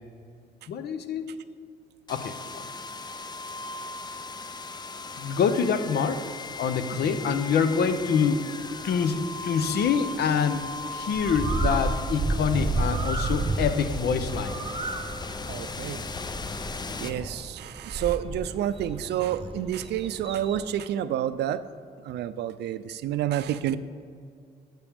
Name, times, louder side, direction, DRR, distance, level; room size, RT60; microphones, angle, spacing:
voice 1, 0.7-1.3 2.1-2.6 5.2-6.3 6.6-8.4 8.8-10.6 10.9-14.5, left 6 dB, 70° left, 10 dB, 0.6 m, -26 dB
sound 1, 2.1-17.9, left 3 dB, 25° left, 0.5 m, -38 dB
Bird, 11.1-20.7, right 3 dB, 35° right, 0.8 m, -32 dB
voice 2, 15.5-16.0 17.0-21.6 22.0-23.8, right 11 dB, 80° right, 13 dB, 0.4 m, -29 dB
12.0 x 6.0 x 3.5 m, 2.4 s
cardioid pair, 85°, 17 cm